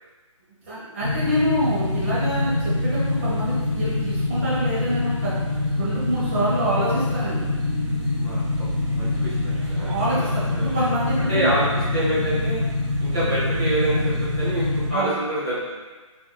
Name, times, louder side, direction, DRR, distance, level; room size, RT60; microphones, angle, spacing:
voice 1, 0.6-5.3 5.8-7.5 9.8-11.5 14.9-15.1, equal, 25° right, -9 dB, 1.1 m, -26 dB
sound 1, 1.0-14.9, left 2 dB, 55° right, 1.2 m, -25 dB
voice 2, 8.2-8.7 8.9-10.3 10.5-10.7 11.3-12.6 13.0-14.0 14.4-15.8, right 1 dB, 5° right, -13 dB, 0.4 m, -27 dB
6.3 x 2.9 x 2.2 m, 1.3 s
hypercardioid pair, 175°, 17 cm